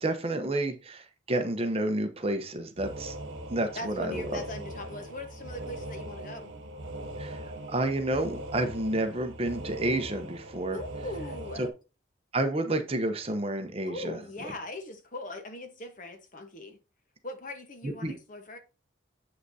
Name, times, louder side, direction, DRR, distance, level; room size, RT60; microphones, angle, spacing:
voice 1, 0.0-3.1 3.5-4.4 7.2-10.8 12.3-14.5 18.0-18.1, right 1 dB, 30° right, 0.9 m, -30 dB
sound 1, 2.8-11.7, right 1 dB, 75° right, 1.3 m, -40 dB
voice 2, 3.7-6.5 10.7-11.7 13.8-16.8 17.2-18.6, left 1 dB, 40° left, 1.2 m, -40 dB
8.0 x 5.8 x 2.8 m
head